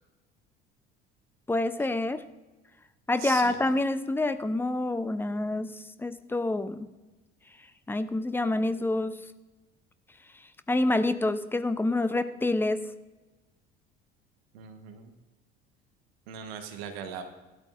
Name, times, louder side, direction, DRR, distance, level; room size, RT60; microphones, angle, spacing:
voice 1, 1.5-2.2 3.1-6.9 7.9-9.3 10.7-12.9, left 2 dB, 5° left, 12 dB, 0.7 m, -27 dB
voice 2, 3.2-3.5 14.5-15.1 16.3-17.2, right 8 dB, 70° right, 6 dB, 1.4 m, -39 dB
16.5 x 12.5 x 2.6 m, 1.1 s
figure-of-eight pair, 60°, 31 cm